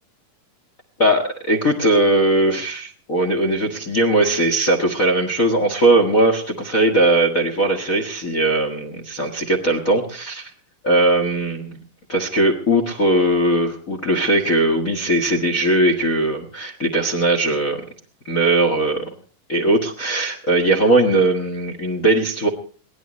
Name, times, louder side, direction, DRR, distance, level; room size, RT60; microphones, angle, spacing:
voice 1, 1.0-10.5 10.8-11.8 12.1-17.8 18.3-19.0 19.5-22.5, right 1 dB, 60° left, 3 dB, 0.8 m, -19 dB
22.5 x 17.5 x 3.1 m, 0.42 s
omnidirectional pair, 4.4 m